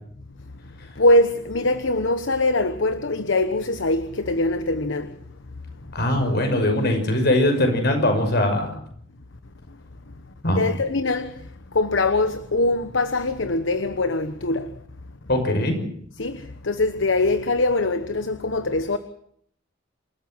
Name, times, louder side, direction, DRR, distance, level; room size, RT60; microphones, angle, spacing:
voice 1, 1.0-5.1 10.5-11.4 11.7-14.7 16.2-19.0, left 2 dB, 75° left, 1.1 m, -22 dB
voice 2, 5.9-8.8 10.4-10.7 15.3-15.8, left 1 dB, 55° left, 6.1 m, -21 dB
27.5 x 14.0 x 7.8 m
head